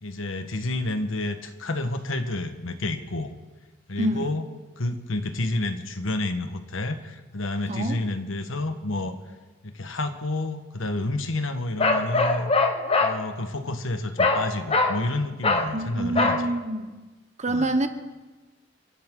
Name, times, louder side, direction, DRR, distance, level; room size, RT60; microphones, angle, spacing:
voice 1, 0.0-3.3 3.9-4.5 4.8-9.1 9.6-12.5 13.0-16.5 17.5-17.7, left 2 dB, 90° left, 8 dB, 1.3 m, -29 dB
voice 2, 4.0-4.3 7.7-8.0 15.7-17.0 17.4-17.9, right 1 dB, 35° right, 8 dB, 1.1 m, -26 dB
Bark, 11.8-13.2 14.2-14.4 14.7-15.0 15.4-15.7 16.2-16.4, left 3 dB, 30° left, 1.2 m, -22 dB
29.5 x 11.0 x 3.8 m, 1.2 s
head